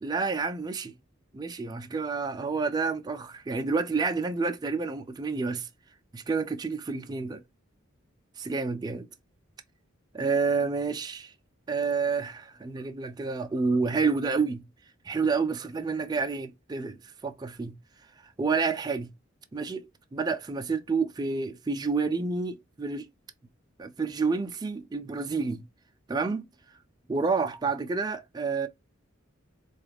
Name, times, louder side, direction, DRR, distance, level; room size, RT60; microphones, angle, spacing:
voice 1, 0.0-0.9 1.3-5.7 6.1-7.4 8.4-9.1 10.1-11.3 11.7-14.6 15.0-17.8 18.2-19.1 19.5-23.1 23.8-25.7 26.1-26.5 27.1-28.7, right 4 dB, 20° right, 0.3 m, -29 dB
4.0 x 2.3 x 3.3 m
head